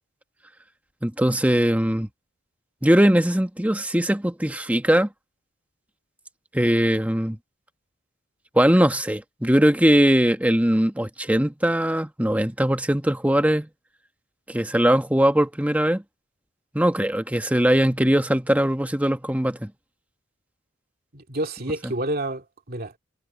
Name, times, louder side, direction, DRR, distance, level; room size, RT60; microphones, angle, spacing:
voice 1, 1.0-2.1 2.8-5.1 6.5-7.4 8.5-13.7 14.5-16.0 16.7-19.7 21.8-21.9, equal, 5° right, 1.1 m, -20 dB
voice 2, 21.1-23.0, right 1 dB, 45° right, 2.7 m, -29 dB
head